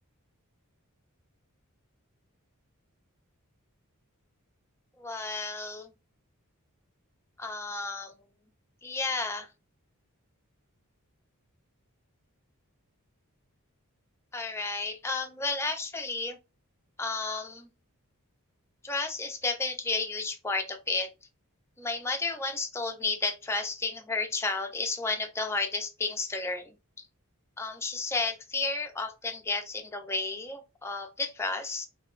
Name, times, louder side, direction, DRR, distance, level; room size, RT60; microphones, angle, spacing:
voice 1, 5.0-5.9 7.4-8.1 8.8-9.5 14.3-16.4 17.0-17.7 18.8-21.1 21.8-26.7 27.6-31.9, left 3 dB, 10° left, 0.4 m, -32 dB
2.8 x 2.2 x 2.3 m
head